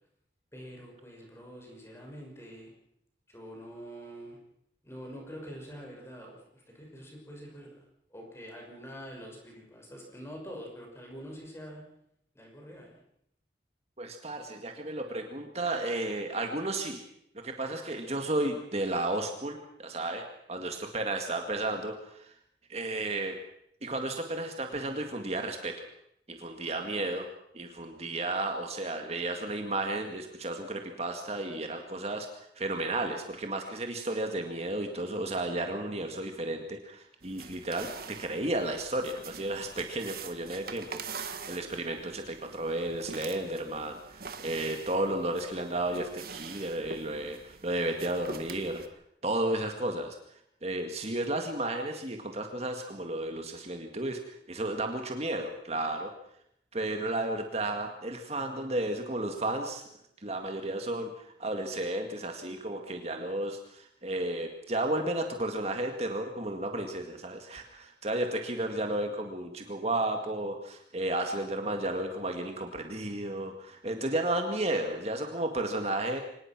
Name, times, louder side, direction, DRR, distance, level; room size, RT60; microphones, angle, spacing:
voice 1, 0.5-2.7 3.3-4.4 4.8-7.7 8.1-11.8 12.3-13.0, equal, 15° left, 0 dB, 6.0 m, -45 dB
voice 2, 14.0-17.0 17.3-22.3 22.7-23.4 23.8-25.8 26.3-27.3 27.5-48.8 49.2-50.2 50.6-56.1 56.7-59.8 60.2-76.2, right 1 dB, 35° right, 4 dB, 1.9 m, -33 dB
sound 1, 37.2-48.9, right 5 dB, 55° right, 1.7 m, -45 dB
24.5 x 19.5 x 6.1 m, 0.75 s
head